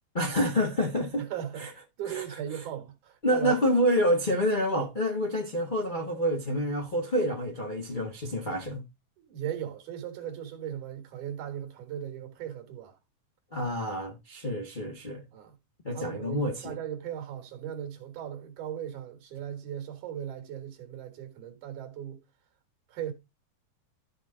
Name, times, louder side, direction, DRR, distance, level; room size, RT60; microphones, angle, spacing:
voice 1, 0.1-1.2 1.6-1.7 2.1-2.2 3.2-8.8 13.5-15.2 15.8-16.8, equal, 60° left, 0.5 m, -28 dB
voice 2, 1.2-3.6 9.2-13.0 15.3-15.6 15.9-22.2 22.9-23.1, right 10 dB, 70° right, 2.9 m, -38 dB
13.5 x 4.5 x 3.7 m
omnidirectional pair, 3.7 m